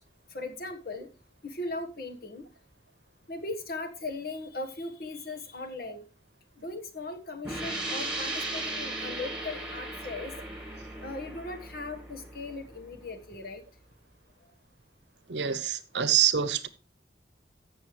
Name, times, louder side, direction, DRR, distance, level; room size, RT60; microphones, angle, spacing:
voice 1, 0.3-1.1 1.4-2.5 3.3-6.0 6.6-10.3 11.0-13.6, left 2 dB, 55° left, 1.4 m, -38 dB
sound 1, 7.4-12.9, right 2 dB, 5° right, 1.8 m, -37 dB
voice 2, 15.3-16.7, right 9 dB, 75° right, 0.9 m, -26 dB
15.0 x 6.5 x 3.2 m
head